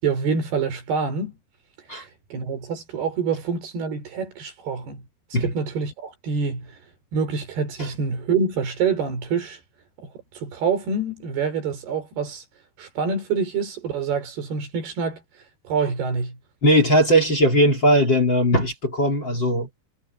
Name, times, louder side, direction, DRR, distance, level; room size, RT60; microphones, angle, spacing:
voice 1, 0.0-1.4 1.9-5.0 5.4-6.8 7.1-9.6 10.0-12.4 12.8-15.2 15.6-16.4, right 5 dB, 65° right, 6.1 m, -26 dB
voice 2, 16.6-19.9, equal, 30° left, 3.4 m, -19 dB
omnidirectional pair, 4.9 m